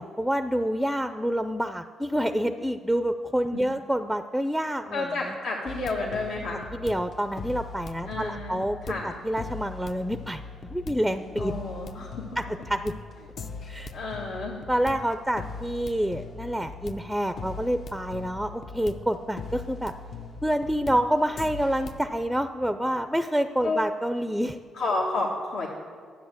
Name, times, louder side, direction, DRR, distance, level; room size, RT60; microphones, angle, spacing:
voice 1, 0.0-5.3 6.7-8.8 9.0-10.4 10.7-11.6 12.4-12.9 13.7-13.9 14.7-19.9 20.4-24.6, equal, ahead, 9 dB, 0.4 m, -27 dB
voice 2, 4.9-6.6 8.1-9.1 11.4-12.2 13.9-14.6 23.6-23.8 24.7-25.7, left 3 dB, 75° left, -2 dB, 1.3 m, -30 dB
sound 1, 5.7-22.0, left 4 dB, 50° left, 0.7 m, -40 dB
10.5 x 7.8 x 7.2 m, 2.1 s
cardioid pair, 90°, 0 cm